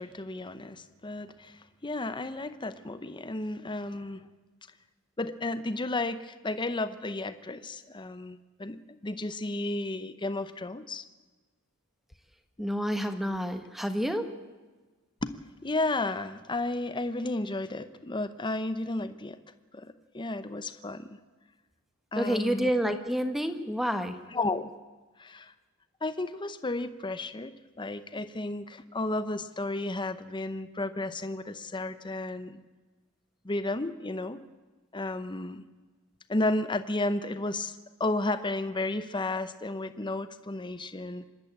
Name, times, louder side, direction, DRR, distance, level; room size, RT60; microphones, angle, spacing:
voice 1, 0.0-4.3 5.2-11.0 15.2-15.3 15.6-19.4 19.7-21.2 22.1-22.7 24.3-24.7 25.2-25.5 26.0-27.5 27.8-32.6 33.4-34.4 34.9-35.6 36.3-41.3, left 2 dB, 20° left, 11 dB, 0.8 m, -33 dB
voice 2, 12.6-14.3 22.2-24.2, equal, ahead, 7 dB, 1.3 m, -29 dB
26.5 x 11.5 x 8.8 m, 1.3 s
head